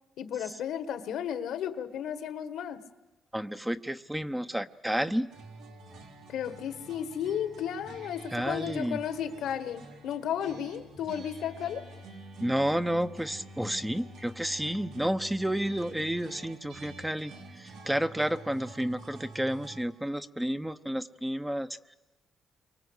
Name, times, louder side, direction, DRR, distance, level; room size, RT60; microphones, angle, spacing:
voice 1, 0.2-2.8 6.3-11.8, left 9 dB, 80° left, 11 dB, 1.7 m, -34 dB
voice 2, 3.3-5.3 8.3-9.0 12.4-21.9, right 1 dB, 5° right, 11 dB, 0.9 m, -31 dB
sound 1, 5.3-19.9, right 2 dB, 85° right, 4.1 m, -48 dB
29.0 x 24.0 x 8.2 m, 1.1 s
cardioid pair, 90°, 0 cm